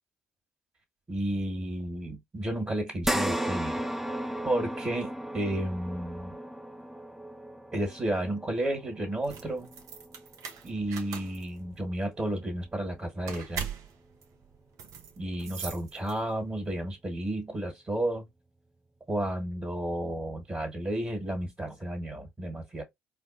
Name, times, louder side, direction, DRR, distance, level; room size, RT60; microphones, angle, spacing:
voice 1, 1.1-3.8 4.4-6.3 7.7-9.7 10.6-13.7 15.2-18.3 19.1-22.8, right 1 dB, 25° right, 1.5 m, -32 dB
sound 1, 3.0-11.6 12.1-12.2 13.6-13.7, right 1 dB, 5° right, 0.5 m, -36 dB
sound 2, 9.1-16.5, right 7 dB, 60° right, 0.7 m, -42 dB
4.2 x 2.3 x 2.5 m
hypercardioid pair, 50°, 6 cm